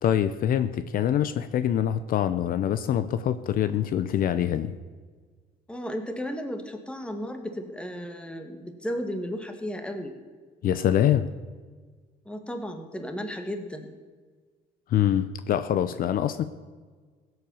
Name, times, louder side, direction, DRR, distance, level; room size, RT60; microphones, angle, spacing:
voice 1, 0.0-4.7 10.6-11.3 14.9-16.4, left 10 dB, 60° left, 12 dB, 0.7 m, -24 dB
voice 2, 5.7-10.1 12.3-13.9, equal, 5° left, 6 dB, 1.8 m, -34 dB
16.5 x 8.0 x 7.1 m, 1.5 s
cardioid pair, 110°, 17 cm